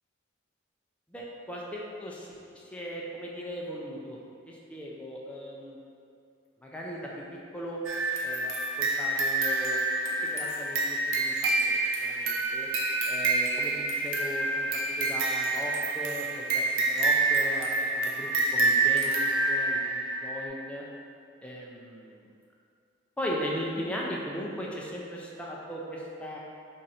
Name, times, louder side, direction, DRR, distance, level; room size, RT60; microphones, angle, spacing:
voice 1, 1.1-4.2 4.5-5.8 6.6-7.8 8.2-11.7 12.0-12.7 13.1-20.9 21.4-22.3 23.2-26.4, equal, 5° left, -4 dB, 0.4 m, -38 dB
sound 1, 7.8-20.5, right 2 dB, 85° right, 0.5 m, -27 dB
4.2 x 2.5 x 4.0 m, 2.4 s
head